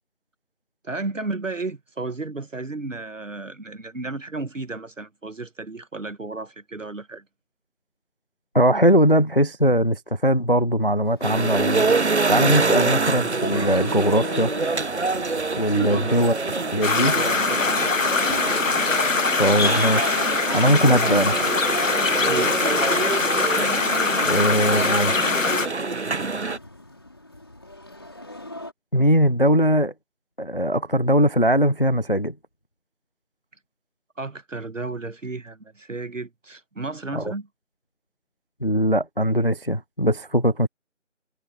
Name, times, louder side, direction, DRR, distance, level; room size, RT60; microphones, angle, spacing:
voice 1, 0.8-7.2 15.8-16.6 16.9-18.1 22.2-22.7 34.2-37.5, right 3 dB, 75° right, 1.5 m, -33 dB
voice 2, 8.5-11.8 12.3-14.5 15.6-16.3 16.7-17.1 19.4-20.3 20.5-21.4 24.2-25.1 28.9-29.9 30.4-32.3 37.1-37.3 38.6-40.7, equal, 45° left, 0.5 m, -20 dB
sound 1, 11.0-28.7, left 2 dB, 20° left, 4.5 m, -39 dB
sound 2, 11.2-26.6, right 3 dB, 60° right, 0.7 m, -26 dB
sound 3, 16.8-25.7, left 4 dB, 80° left, 1.0 m, -23 dB
figure-of-eight pair, 175°, 38 cm